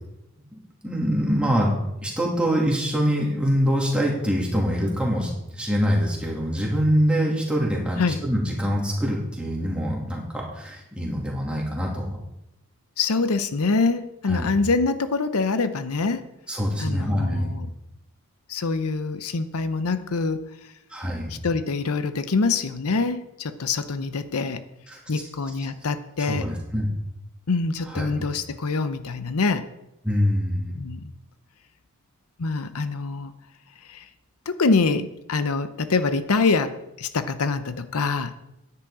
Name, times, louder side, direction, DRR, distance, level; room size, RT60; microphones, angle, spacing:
voice 1, 0.5-12.2 14.3-14.6 16.5-17.6 20.9-21.4 24.9-25.0 26.2-26.9 27.9-28.1 30.0-30.8, equal, 5° right, -3 dB, 2.5 m, -24 dB
voice 2, 13.0-16.3 16.8-17.7 18.5-20.4 21.3-24.6 25.1-26.5 27.5-29.7 30.7-31.1 32.4-33.3 33.8-34.1 34.5-38.3, left 4 dB, 80° left, 11 dB, 0.7 m, -25 dB
10.5 x 10.0 x 4.9 m, 0.89 s
head